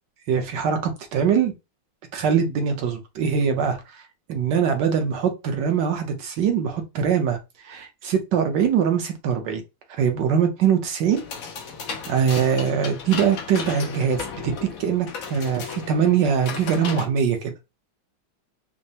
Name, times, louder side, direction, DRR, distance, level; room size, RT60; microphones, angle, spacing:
voice 1, 0.3-1.5 2.1-4.0 4.3-7.4 7.6-9.6 9.9-11.2 12.1-14.5 14.8-17.5, right 7 dB, 65° right, 1.3 m, -22 dB
sound 1, 11.1-17.1, left 6 dB, 70° left, 0.8 m, -35 dB
5.4 x 2.1 x 2.7 m
omnidirectional pair, 2.3 m